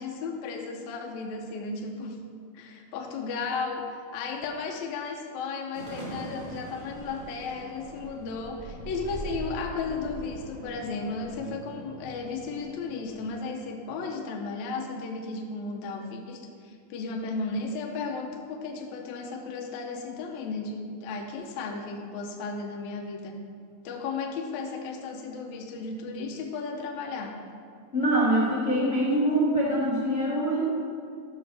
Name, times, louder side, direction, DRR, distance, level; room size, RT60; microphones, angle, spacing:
voice 1, 0.0-2.2 2.5-3.9 4.1-23.4 23.8-27.4, left 4 dB, 75° left, 2 dB, 1.9 m, -34 dB
sound 1, 5.7-13.3, right 1 dB, 50° right, 0.6 m, -41 dB
voice 2, 27.9-30.6, right 1 dB, 35° left, -8 dB, 1.0 m, -24 dB
12.0 x 6.3 x 3.3 m, 2.3 s
omnidirectional pair, 3.5 m